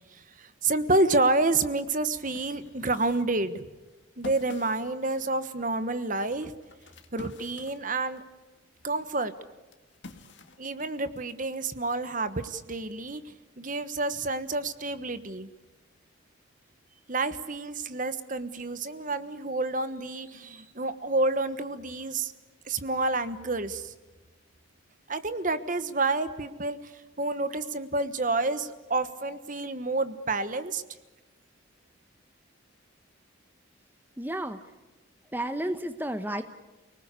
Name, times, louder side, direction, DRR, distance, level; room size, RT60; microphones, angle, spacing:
voice 1, 0.1-3.6 4.2-6.5 7.1-8.2 8.8-9.3 10.6-15.5 17.1-22.3 22.7-23.9 25.1-26.9 27.2-30.8, right 2 dB, 40° right, 12 dB, 1.2 m, -29 dB
sound 1, 1.9-8.3 8.7-11.3, left 2 dB, 60° left, 2.0 m, -49 dB
voice 2, 34.2-34.6 35.3-36.4, right 1 dB, 10° right, 8 dB, 1.0 m, -31 dB
29.5 x 19.5 x 8.3 m, 1.1 s
head